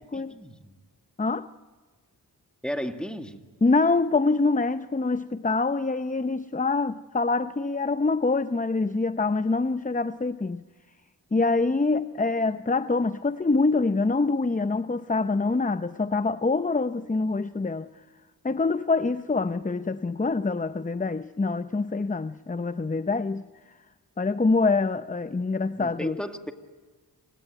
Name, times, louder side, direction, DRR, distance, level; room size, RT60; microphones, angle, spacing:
voice 1, 0.1-0.7 2.6-3.4 25.8-26.5, equal, ahead, 5 dB, 2.3 m, -34 dB
voice 2, 3.6-10.6 11.3-17.9 18.4-23.5 24.2-26.2, left 3 dB, 20° left, 12 dB, 0.7 m, -25 dB
27.5 x 17.0 x 9.2 m, 1.4 s
cardioid pair, 45°, 42 cm